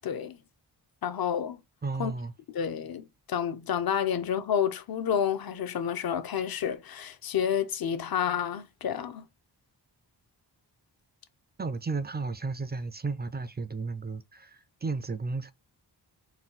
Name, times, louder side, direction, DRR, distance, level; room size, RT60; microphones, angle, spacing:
voice 1, 0.0-0.4 1.0-1.6 2.0-2.1 2.5-9.3, left 8 dB, 55° left, 0.6 m, -30 dB
voice 2, 1.8-2.3 11.6-15.5, right 4 dB, 25° right, 0.4 m, -33 dB
4.1 x 2.2 x 3.8 m
wide cardioid pair, 85°, 44 cm